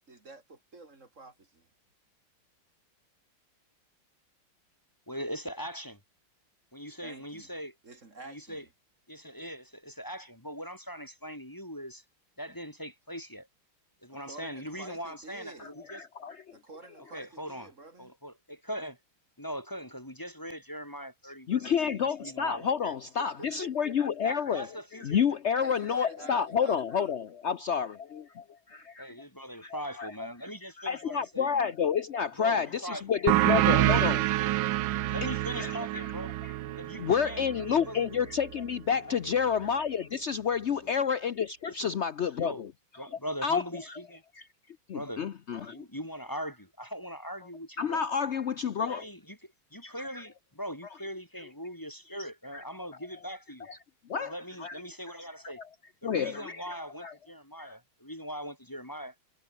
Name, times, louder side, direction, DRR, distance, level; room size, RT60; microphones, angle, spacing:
voice 1, 0.1-1.7 7.0-7.6 7.8-8.7 14.1-15.7 16.5-18.1 23.2-23.9 25.6-27.1, right 3 dB, 35° right, 3.1 m, -49 dB
voice 2, 5.1-6.0 6.7-7.7 8.2-8.6 9.1-12.0 12.4-13.5 14.0-16.0 17.1-17.7 18.0-19.0 19.4-22.9 24.2-25.3 29.0-31.7 32.4-34.3 35.1-36.3 36.7-37.5 37.9-38.0 39.1-39.4 40.8-40.9 41.7-42.0 42.4-42.6 43.0-44.2 44.9-45.3 45.7-48.0 48.8-53.7 54.3-55.6 56.0-59.1, equal, 10° left, 2.5 m, -41 dB
voice 3, 15.9-16.6 21.5-24.7 24.9-28.2 29.0-29.1 29.6-30.3 30.8-34.2 35.6-36.1 36.4-36.5 37.0-42.7 43.4-43.6 43.9-44.0 44.4-44.5 44.9-45.8 47.8-49.1 49.8-50.2 52.5-52.6 53.7-53.8 54.1-54.8 55.2-55.5 56.0-56.6 57.0-57.1 57.6-57.7, left 7 dB, 70° left, 0.6 m, -29 dB
sound 1, 33.3-38.5, right 15 dB, 75° right, 1.2 m, -27 dB
omnidirectional pair, 2.3 m